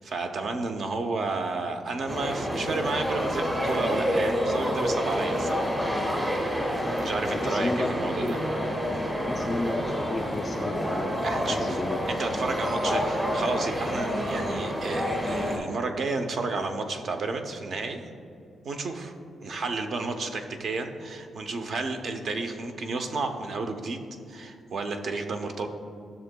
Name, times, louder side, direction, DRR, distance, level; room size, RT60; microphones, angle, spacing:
voice 1, 0.0-5.8 7.0-8.4 11.2-11.8 12.1-18.0 18.6-19.1 19.4-24.0 24.3-25.7, right 3 dB, 50° right, 6 dB, 0.6 m, -31 dB
sound 1, 2.1-15.6, equal, 10° right, 1.2 m, -28 dB
voice 2, 7.3-7.9 8.2-8.4 9.3-11.1 11.4-12.0, left 2 dB, 20° left, 1 dB, 0.3 m, -32 dB
12.5 x 6.9 x 2.2 m, 2.4 s
wide cardioid pair, 155°, 0 cm